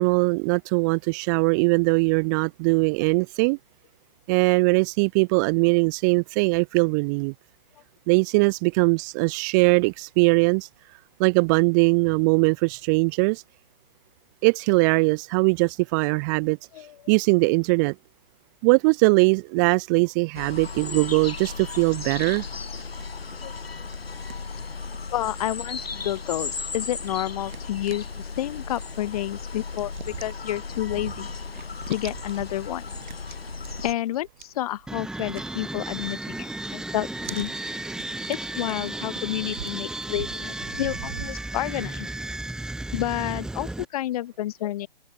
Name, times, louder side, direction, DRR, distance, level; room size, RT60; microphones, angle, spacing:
voice 1, 0.0-3.6 4.3-7.3 8.1-10.7 11.2-13.4 14.4-16.6 17.1-17.9 18.6-22.4, right 31 dB, 20° right, 0.8 m, -21 dB
sound 1, 20.3-33.9, left 4 dB, 80° left, 7.6 m, -36 dB
sound 2, 22.1-36.4 36.7-41.9, right 9 dB, 50° right, 8.0 m, -45 dB
voice 2, 25.1-31.3 31.9-32.8 33.3-33.4 33.8-37.5 38.3-42.1 42.9-44.9, left 13 dB, 40° left, 2.8 m, -30 dB
sound 3, 34.9-43.8, right 2 dB, ahead, 2.8 m, -34 dB
hypercardioid pair, 145°, 30 cm